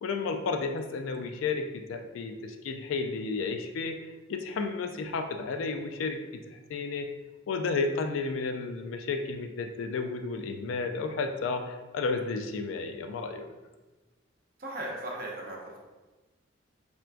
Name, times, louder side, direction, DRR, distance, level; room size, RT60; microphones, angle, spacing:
voice 1, 0.0-4.0 4.3-6.2 6.5-7.1 7.5-13.5, left 4 dB, 85° left, 6 dB, 0.3 m, -32 dB
voice 2, 14.6-15.8, right 1 dB, 50° right, -2 dB, 0.7 m, -37 dB
4.4 x 2.2 x 2.4 m, 1.2 s
head